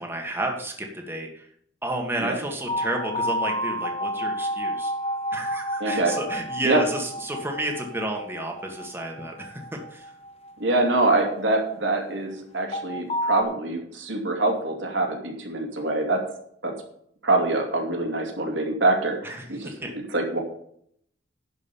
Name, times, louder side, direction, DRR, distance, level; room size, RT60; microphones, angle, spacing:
voice 1, 0.0-1.5 1.8-4.9 5.3-10.1 19.2-19.9, right 1 dB, 10° right, 1 dB, 1.6 m, -31 dB
sound 1, 2.7-11.7 12.7-13.4, equal, 35° left, 1.0 m, -31 dB
voice 2, 5.8-6.2 6.6-6.8 10.6-16.2 16.6-16.7 17.2-20.4, right 2 dB, 70° right, 2 dB, 2.4 m, -25 dB
11.0 x 5.3 x 7.1 m, 0.67 s
head